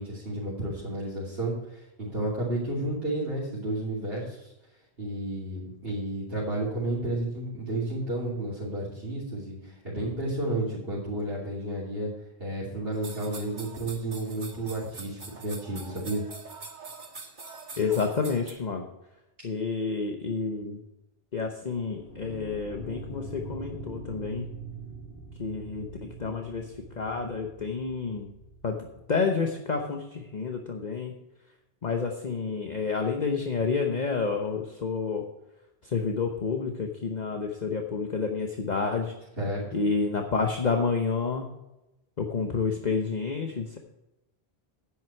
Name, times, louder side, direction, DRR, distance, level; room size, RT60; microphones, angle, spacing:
voice 1, 0.0-4.5 5.0-12.1 12.4-16.2 39.4-39.8, right 1 dB, 65° right, -7 dB, 3.3 m, -32 dB
sound 1, 12.9-18.5, right 3 dB, 50° right, 1.6 m, -44 dB
voice 2, 17.8-18.9 19.4-20.8 21.3-24.5 25.4-28.3 28.6-28.8 29.1-31.2 31.8-35.2 35.9-39.1 39.7-41.5 42.2-43.8, left 5 dB, 45° left, 3 dB, 1.0 m, -29 dB
sound 2, 21.9-29.0, right 2 dB, 80° left, 2.9 m, -43 dB
10.5 x 9.4 x 4.6 m, 0.94 s
omnidirectional pair, 1.1 m